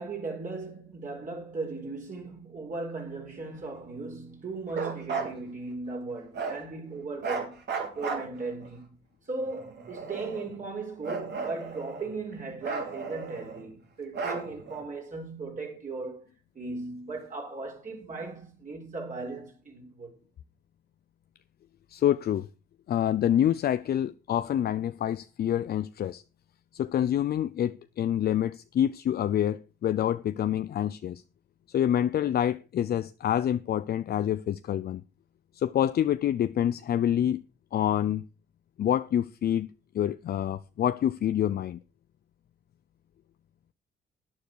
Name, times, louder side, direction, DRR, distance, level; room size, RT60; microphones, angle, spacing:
voice 1, 0.0-7.6 7.9-9.0 9.3-16.2 16.5-20.1, right 3 dB, 40° right, 4.4 m, -37 dB
Bark, 4.7-5.3 6.3-6.6 7.2-8.7 9.5-10.6 11.0-12.2 12.6-13.6 14.1-14.8, right 5 dB, 60° right, 3.5 m, -34 dB
voice 2, 21.9-22.5 22.9-26.2 26.7-31.2 31.7-35.0 35.6-37.4 37.7-38.2 38.8-39.7 39.9-41.8, left 10 dB, 50° left, 0.5 m, -27 dB
12.0 x 9.7 x 4.7 m
cardioid pair, 90°, 20 cm